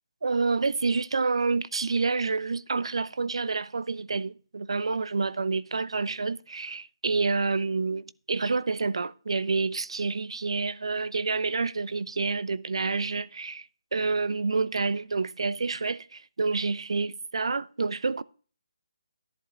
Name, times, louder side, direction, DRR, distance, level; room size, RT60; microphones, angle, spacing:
voice 1, 0.2-13.7 13.9-18.2, right 4 dB, 70° right, 0.6 m, -28 dB
12.5 x 11.0 x 2.5 m
hypercardioid pair, 175°, 3 cm